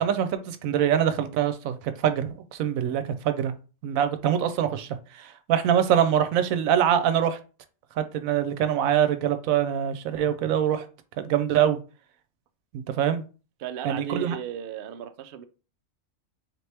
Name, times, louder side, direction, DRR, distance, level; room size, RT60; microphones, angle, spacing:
voice 1, 0.0-3.5 3.8-4.9 5.1-7.4 8.0-10.9 11.2-11.8 12.7-13.2 13.8-14.4, right 9 dB, 85° right, 1.0 m, -24 dB
voice 2, 13.6-15.4, right 9 dB, 65° right, 0.5 m, -35 dB
4.2 x 2.9 x 3.3 m
omnidirectional pair, 1.4 m